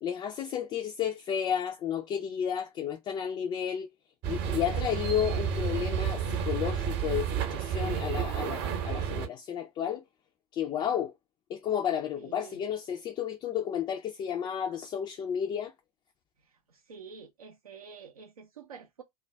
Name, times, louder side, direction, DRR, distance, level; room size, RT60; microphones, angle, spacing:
voice 1, 0.0-3.9 4.3-10.0 10.5-11.1 11.5-15.7, left 9 dB, 25° left, 0.3 m, -32 dB
sound 1, 4.2-9.3, right 8 dB, 50° right, 0.8 m, -31 dB
voice 2, 12.2-12.6 16.9-19.0, right 6 dB, 75° right, 0.5 m, -48 dB
2.3 x 2.1 x 3.2 m
figure-of-eight pair, 80°, 19 cm